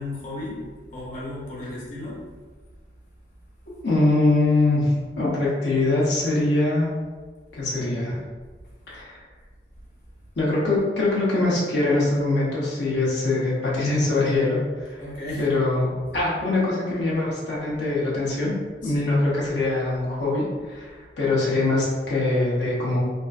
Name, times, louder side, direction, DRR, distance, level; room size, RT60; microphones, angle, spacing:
voice 1, 0.0-2.2 15.0-15.7 18.8-19.1, left 2 dB, 45° left, -6 dB, 0.8 m, -34 dB
voice 2, 3.7-6.9 7.5-8.2 8.9-9.2 10.4-15.0 15.4-18.5 18.8-23.0, left 2 dB, 80° left, -6 dB, 0.8 m, -23 dB
3.4 x 2.5 x 2.4 m, 1.4 s
head